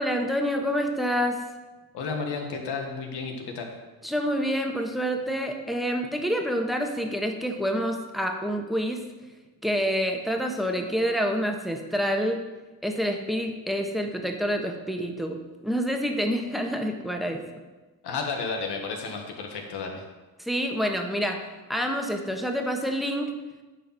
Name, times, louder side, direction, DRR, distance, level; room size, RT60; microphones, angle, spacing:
voice 1, 0.0-1.4 4.0-9.0 9.6-12.4 12.8-17.4 20.4-21.4 21.7-23.3, equal, ahead, 3 dB, 1.4 m, -27 dB
voice 2, 1.9-3.7 18.0-20.0, left 4 dB, 85° left, 2 dB, 1.8 m, -32 dB
10.0 x 4.6 x 7.6 m, 1.2 s
cardioid pair, 80°, 39 cm